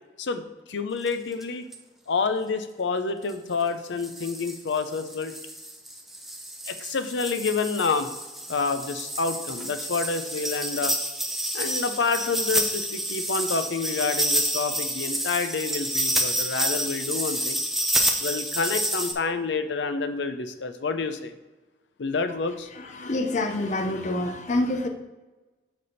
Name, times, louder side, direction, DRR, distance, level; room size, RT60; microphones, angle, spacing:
voice 1, 0.2-1.7 2.1-5.3 6.7-8.1 8.5-10.9 11.5-17.6 18.2-21.3 22.0-22.7, left 4 dB, 90° left, 9 dB, 0.6 m, -28 dB
sound 1, 1.1-1.2 1.4-1.5 1.7-1.8 3.3-3.4 4.0-19.1, right 1 dB, ahead, 0.5 m, -29 dB
voice 2, 22.7-24.9, left 2 dB, 40° left, 5 dB, 0.6 m, -27 dB
6.7 x 3.5 x 5.6 m, 1.1 s
head